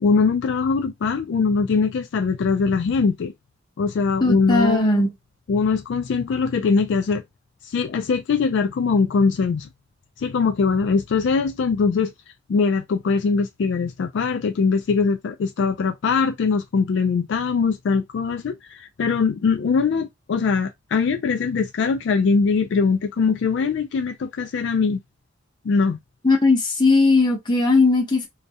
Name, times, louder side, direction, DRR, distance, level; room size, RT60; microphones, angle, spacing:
voice 1, 0.0-3.3 3.8-5.0 5.5-7.2 7.6-9.7 10.2-12.1 12.5-25.0 25.6-26.0, left 5 dB, 65° left, 0.3 m, -21 dB
voice 2, 4.2-5.1 26.2-28.3, left 3 dB, 25° left, 0.7 m, -18 dB
2.4 x 2.1 x 2.6 m
head